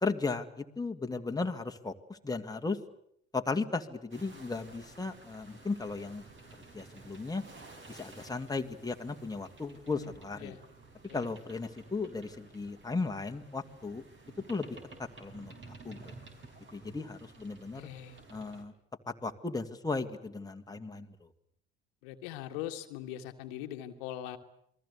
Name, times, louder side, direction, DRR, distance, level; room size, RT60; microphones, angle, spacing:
voice 1, 0.0-2.8 3.3-6.2 6.7-7.4 7.9-10.5 11.1-14.0 14.5-15.5 15.8-16.1 16.7-17.8 18.3-18.7 19.1-21.3, left 3 dB, 10° left, 4 dB, 2.1 m, -36 dB
sound 1, 4.1-18.6, right 3 dB, 40° right, 5.4 m, -53 dB
voice 2, 17.7-18.2 22.0-24.4, left 12 dB, 70° left, 6 dB, 1.7 m, -41 dB
28.0 x 21.5 x 8.2 m, 0.72 s
figure-of-eight pair, 55°, 32 cm